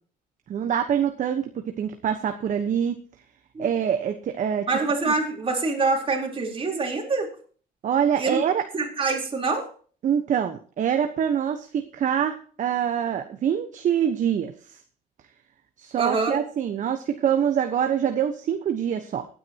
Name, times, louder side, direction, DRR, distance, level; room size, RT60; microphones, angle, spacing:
voice 1, 0.5-1.5 1.8-3.0 3.6-4.7 7.8-8.7 10.0-14.8 15.8-19.3, right 8 dB, 50° right, 7 dB, 1.1 m, -25 dB
voice 2, 4.7-7.3 8.2-8.4 8.7-9.7 16.0-16.4, right 3 dB, 30° right, 1 dB, 3.8 m, -25 dB
17.5 x 9.5 x 2.9 m, 0.43 s
cardioid pair, 110°, 17 cm